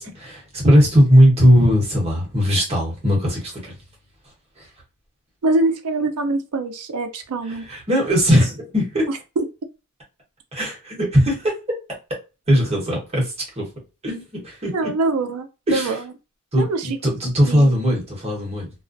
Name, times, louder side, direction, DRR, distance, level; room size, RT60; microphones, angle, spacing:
voice 1, 0.0-3.8 4.6-4.7 7.4-9.1 10.5-11.5 12.5-13.7 14.0-14.9 15.7-16.0 16.5-18.7, equal, 30° right, -3 dB, 1.0 m, -19 dB
voice 2, 5.4-7.7 9.4-9.5 14.7-16.0 16.6-16.9 17.4-17.7, right 2 dB, 80° right, 7 dB, 0.5 m, -23 dB
2.4 x 2.1 x 2.5 m, 0.29 s
head